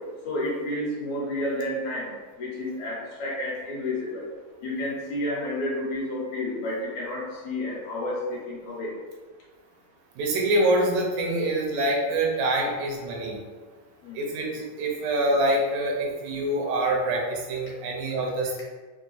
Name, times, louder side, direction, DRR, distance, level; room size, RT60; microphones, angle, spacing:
voice 1, 0.2-2.1 2.4-4.3 4.6-8.9 14.0-14.1, left 1 dB, 65° left, -6 dB, 2.4 m, -30 dB
voice 2, 10.2-13.4 14.2-18.7, right 1 dB, 80° right, -1 dB, 2.3 m, -25 dB
5.9 x 2.2 x 3.9 m, 1.4 s
omnidirectional pair, 3.9 m